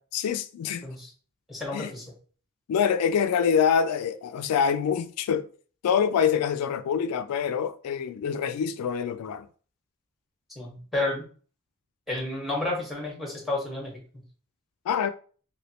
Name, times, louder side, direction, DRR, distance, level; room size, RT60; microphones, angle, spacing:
voice 1, 0.1-0.9 1.7-1.9 2.7-5.5 5.8-9.5 14.9-15.1, left 7 dB, 90° left, 0.3 m, -25 dB
voice 2, 1.5-2.0 10.5-11.2 12.1-13.9, left 2 dB, ahead, 1.3 m, -31 dB
3.1 x 3.0 x 2.8 m
head